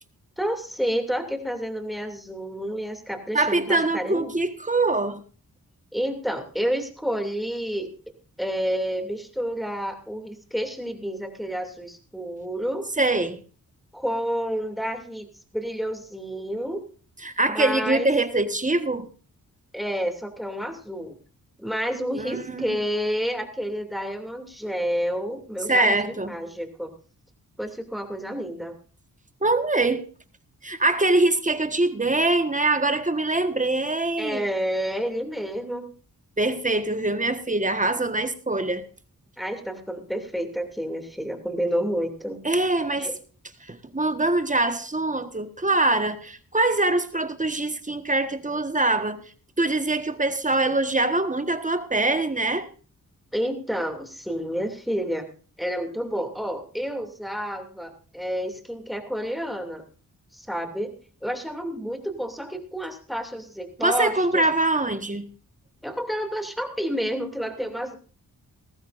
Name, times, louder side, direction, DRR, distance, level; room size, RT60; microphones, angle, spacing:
voice 1, 0.4-4.3 5.9-7.9 8.4-12.9 13.9-16.8 17.5-18.1 19.7-21.1 21.6-26.9 27.6-28.8 34.2-35.9 39.4-42.4 43.0-43.2 53.3-55.3 55.6-59.8 60.3-60.9 61.2-64.4 65.8-68.0, equal, ahead, 2.7 m, -29 dB
voice 2, 3.3-5.2 13.0-13.4 17.2-19.1 22.1-22.7 25.7-26.3 29.4-30.1 30.6-34.4 36.4-38.8 42.4-43.1 43.7-49.2 49.6-52.7 63.8-65.3, right 2 dB, 20° right, 1.4 m, -23 dB
19.0 x 14.5 x 2.6 m
cardioid pair, 70°, 35 cm